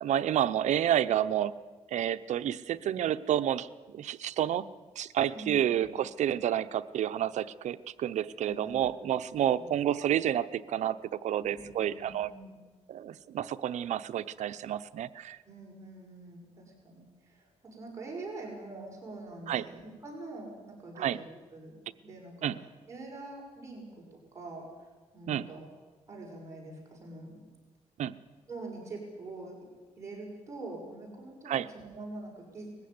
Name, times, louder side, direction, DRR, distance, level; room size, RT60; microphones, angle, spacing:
voice 1, 0.0-1.5 1.9-4.7 5.0-12.3 12.9-15.4 19.5-19.7 21.0-21.2 22.4-22.5 25.3-25.5 28.0-28.1 31.5-31.7, right 11 dB, 80° right, 12 dB, 0.8 m, -30 dB
voice 2, 5.3-5.9 8.4-8.9 9.2-9.7 11.4-12.6 15.4-21.8 22.0-22.5 22.9-25.7 26.1-27.5 28.5-29.6 30.0-32.8, right 2 dB, 25° right, -2 dB, 6.4 m, -45 dB
20.5 x 15.5 x 9.7 m, 1.3 s
cardioid pair, 130°, 12 cm